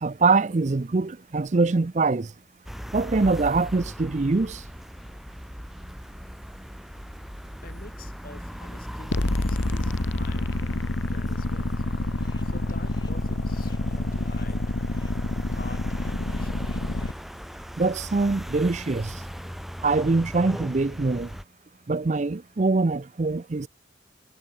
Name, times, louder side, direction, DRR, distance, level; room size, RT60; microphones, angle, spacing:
voice 1, 0.0-2.3 2.9-4.6 17.8-19.1 19.8-21.3 21.9-23.7, right 3 dB, 35° right, 0.5 m, -23 dB
sound 1, 2.7-21.5, equal, ahead, 1.9 m, -39 dB
voice 2, 7.6-10.6 11.0-11.9 12.4-14.8 15.5-16.7, left 2 dB, 45° left, 4.0 m, -48 dB
sound 2, 9.1-17.1, left 2 dB, 70° left, 1.4 m, -27 dB
sound 3, 11.8-17.1, equal, 20° left, 2.4 m, -47 dB
head